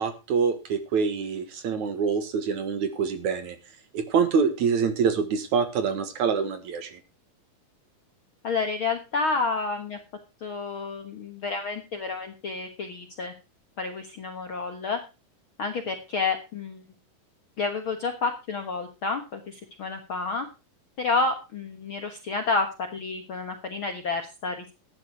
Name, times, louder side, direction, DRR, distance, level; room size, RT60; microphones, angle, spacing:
voice 1, 0.0-3.6 3.9-7.0, right 6 dB, 60° right, 9 dB, 2.7 m, -25 dB
voice 2, 8.4-10.0 10.4-13.3 13.8-15.0 15.6-16.8 17.6-20.5 21.0-22.7 22.9-24.6, left 4 dB, 55° left, 5 dB, 1.5 m, -29 dB
13.0 x 10.0 x 4.7 m, 0.29 s
omnidirectional pair, 4.1 m